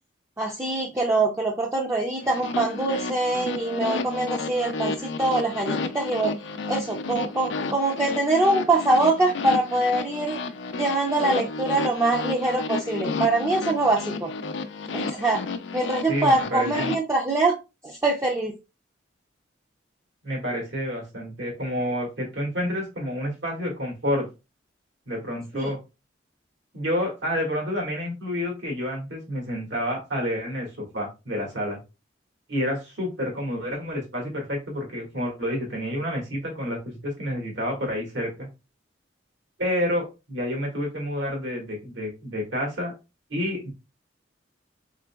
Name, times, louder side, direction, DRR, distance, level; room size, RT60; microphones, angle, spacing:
voice 1, 0.4-6.4 6.7-10.4 10.8-14.3 14.9-15.4 15.7-17.6 17.8-18.5 25.5-25.7, right 2 dB, 15° right, -1 dB, 0.5 m, -24 dB
sound 1, 2.2-17.0, left 4 dB, 75° left, 0.5 m, -31 dB
voice 2, 16.1-16.9 20.2-24.3 25.1-25.8 26.7-31.8 32.5-38.5 39.6-42.9 43.3-43.7, equal, 75° right, 0 dB, 1.8 m, -29 dB
4.0 x 3.8 x 2.3 m, 0.27 s
head